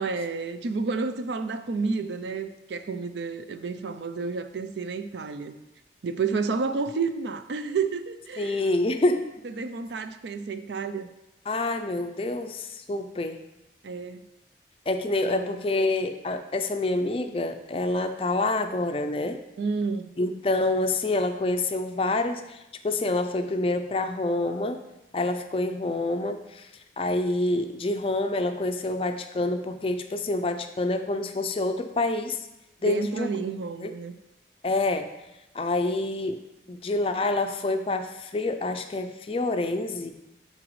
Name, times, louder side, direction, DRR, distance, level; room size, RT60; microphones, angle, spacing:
voice 1, 0.0-5.5 6.0-8.6 9.4-11.1 13.8-14.3 15.3-15.5 19.6-20.1 32.9-34.1, right 4 dB, 85° right, 10 dB, 0.4 m, -30 dB
voice 2, 8.4-9.3 11.5-13.4 14.9-19.4 20.2-24.8 25.1-26.7 27.0-32.4 32.8-33.3 33.8-33.9 34.6-35.1 35.5-36.4 36.7-40.1, left 2 dB, 30° left, 8 dB, 0.4 m, -27 dB
9.9 x 4.0 x 3.1 m, 0.93 s
head